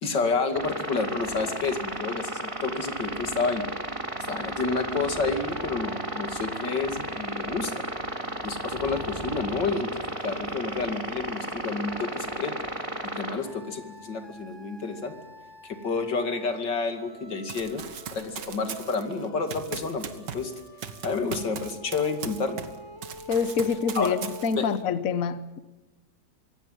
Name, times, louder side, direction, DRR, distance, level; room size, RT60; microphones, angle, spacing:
voice 1, 0.0-3.6 4.2-7.8 8.4-9.9 10.2-12.5 13.1-15.1 15.6-17.8 18.1-20.5 21.0-22.6 23.9-24.2 24.6-24.7, left 4 dB, 85° left, 3.1 m, -29 dB
sound 1, 0.5-13.3, right 1 dB, 15° right, 3.6 m, -34 dB
sound 2, 5.5-24.6, equal, 15° left, 3.7 m, -48 dB
Run, 17.5-22.8 23.0-24.8, right 7 dB, 85° right, 2.1 m, -39 dB
voice 2, 23.3-25.6, left 6 dB, 55° left, 1.3 m, -26 dB
24.5 x 17.0 x 9.2 m
omnidirectional pair, 1.9 m